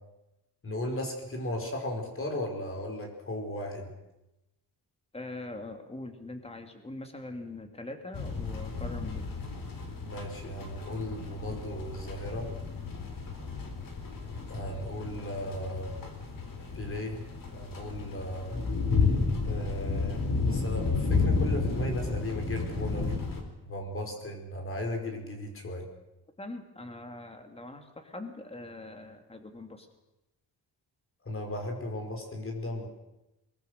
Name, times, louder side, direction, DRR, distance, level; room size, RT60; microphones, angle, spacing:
voice 1, 0.6-3.9 10.0-12.5 14.5-16.0 16.7-17.2 17.5-18.5 19.4-23.2 23.6-25.9 31.2-32.9, left 1 dB, 30° left, 2 dB, 5.0 m, -36 dB
voice 2, 5.1-9.3 26.4-29.9, left 2 dB, 15° left, 5 dB, 2.6 m, -42 dB
sound 1, 8.1-23.4, left 4 dB, 55° left, 3.9 m, -32 dB
23.5 x 22.5 x 6.6 m, 0.96 s
wide cardioid pair, 155°, 40 cm